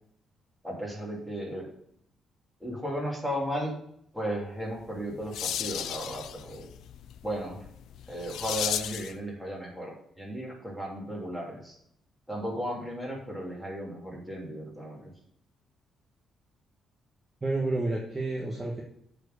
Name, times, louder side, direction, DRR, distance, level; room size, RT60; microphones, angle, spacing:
voice 1, 0.6-1.6 2.6-3.7 4.1-6.7 7.2-7.6 8.1-11.8 12.3-15.1, equal, 5° right, -3 dB, 3.0 m, -35 dB
sound 1, 4.8-9.2, left 10 dB, 80° left, 0.4 m, -35 dB
voice 2, 17.4-18.8, right 2 dB, 25° right, -2 dB, 1.4 m, -30 dB
7.9 x 4.5 x 6.8 m, 0.71 s
cardioid pair, 115°, 0 cm